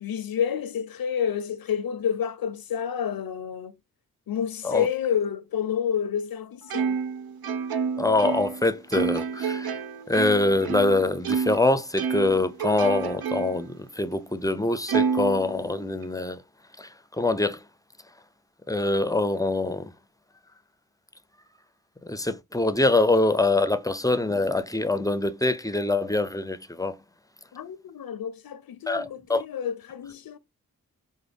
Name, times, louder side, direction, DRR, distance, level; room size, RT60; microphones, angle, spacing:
voice 1, 0.0-3.7 4.3-7.0 27.5-30.4, left 8 dB, 75° left, 0.6 m, -29 dB
Plucked string instrument, 6.7-11.6 12.0-13.7 14.1-14.2 14.9-16.0, right 6 dB, 80° right, 0.6 m, -29 dB
voice 2, 8.0-9.8 10.1-16.4 16.8-17.6 18.7-19.9 22.0-27.0 28.9-29.4, left 2 dB, 10° left, 0.5 m, -24 dB
5.0 x 2.2 x 3.3 m
cardioid pair, 50°, 36 cm